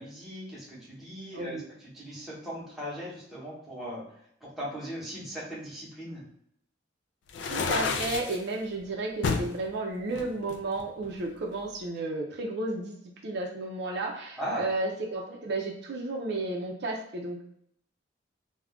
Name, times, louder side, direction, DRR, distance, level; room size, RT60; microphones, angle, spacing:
voice 1, 0.0-4.0 4.4-6.3 14.4-14.6, equal, ahead, -7 dB, 0.8 m, -38 dB
voice 2, 1.3-1.6 7.4-12.9 13.2-17.4, right 2 dB, 60° right, -1 dB, 0.4 m, -33 dB
sound 1, 7.3-8.4 9.2-9.5 10.1-11.2, left 4 dB, 65° left, 0.3 m, -30 dB
2.3 x 2.1 x 3.5 m, 0.70 s
head